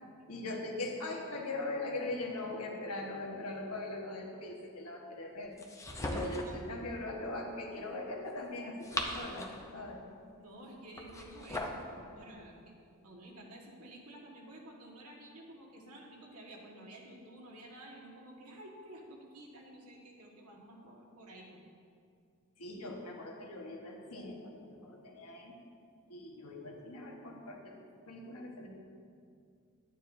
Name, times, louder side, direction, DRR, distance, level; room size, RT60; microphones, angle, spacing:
voice 1, 0.3-5.6 6.0-10.0 22.6-25.5 26.1-27.7 28.1-28.7, left 2 dB, 85° left, 0 dB, 1.4 m, -41 dB
sound 1, 5.6-6.6 8.6-9.7 10.9-11.8, left 1 dB, 15° left, 0.7 m, -38 dB
voice 2, 6.1-6.6 10.4-12.6 13.0-21.6, right 1 dB, 80° right, -2 dB, 1.6 m, -51 dB
11.5 x 9.2 x 2.7 m, 2.3 s
head